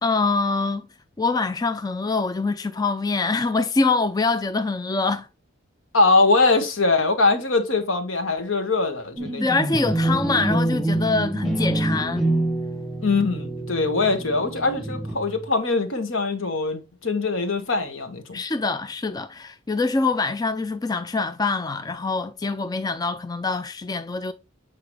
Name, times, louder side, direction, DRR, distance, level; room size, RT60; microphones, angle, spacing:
voice 1, 0.0-0.9 1.2-5.3 9.4-12.3 18.3-24.3, left 3 dB, 20° left, 0.4 m, -24 dB
voice 2, 5.9-9.4 13.0-18.4, left 3 dB, 75° left, 1.5 m, -22 dB
sound 1, 9.2-15.5, right 1 dB, ahead, 1.2 m, -26 dB
8.1 x 4.7 x 3.2 m
head